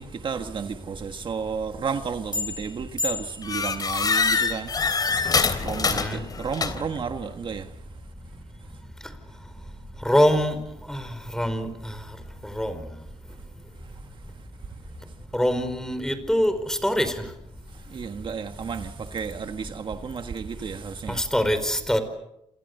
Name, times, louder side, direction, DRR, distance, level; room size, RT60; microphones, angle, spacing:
voice 1, 0.0-5.1 5.6-7.7 13.9-14.0 17.7-21.2, right 6 dB, 45° right, 1.6 m, -32 dB
sound 1, 2.3-2.7 3.0-7.0, left 5 dB, 35° left, 3.3 m, -25 dB
voice 2, 5.9-6.2 10.0-10.6 10.9-12.0 12.4-12.8 15.3-17.3 21.1-22.0, equal, 5° left, 4.9 m, -24 dB
29.0 x 28.0 x 6.8 m
cardioid pair, 115°, 12 cm